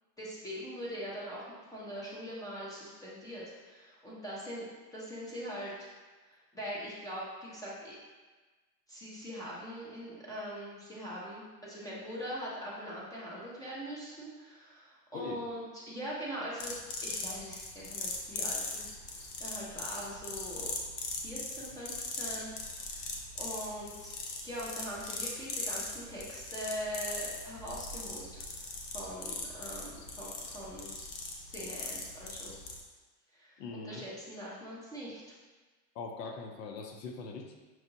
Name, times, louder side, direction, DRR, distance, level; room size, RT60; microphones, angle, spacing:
voice 1, 0.2-5.9 6.3-8.0 8.9-18.9 19.1-20.7 21.2-22.5 22.9-24.1 24.4-28.7 28.9-32.5 33.3-35.4, equal, 10° left, -7 dB, 0.8 m, -42 dB
sound 1, 16.6-32.8, left 3 dB, 30° left, 0.5 m, -40 dB
voice 2, 33.6-34.1 36.0-37.6, left 4 dB, 80° left, 4 dB, 0.8 m, -41 dB
5.8 x 2.6 x 2.6 m, 1.3 s
supercardioid pair, 130°, 48 cm